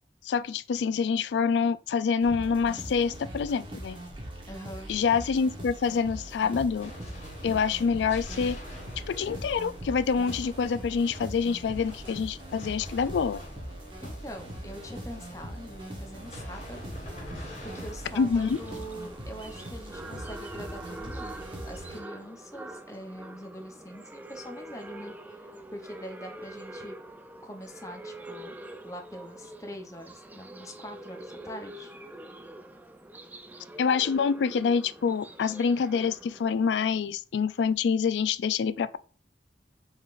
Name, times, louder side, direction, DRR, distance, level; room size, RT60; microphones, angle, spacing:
voice 1, 0.2-4.0 4.9-6.9 7.4-8.6 9.1-13.4 18.2-18.6 33.8-39.0, left 6 dB, 85° left, 0.3 m, -26 dB
sound 1, 2.2-22.0, right 1 dB, 30° right, 1.0 m, -41 dB
voice 2, 4.5-4.9 14.0-16.8 17.3-17.4 17.7-25.4 25.7-27.0 27.4-28.5 28.8-31.9, equal, 20° left, 0.7 m, -43 dB
sound 2, 5.6-18.8, equal, 35° left, 1.7 m, -46 dB
sound 3, 18.3-36.9, right 1 dB, 10° right, 0.3 m, -45 dB
5.2 x 3.9 x 2.5 m
head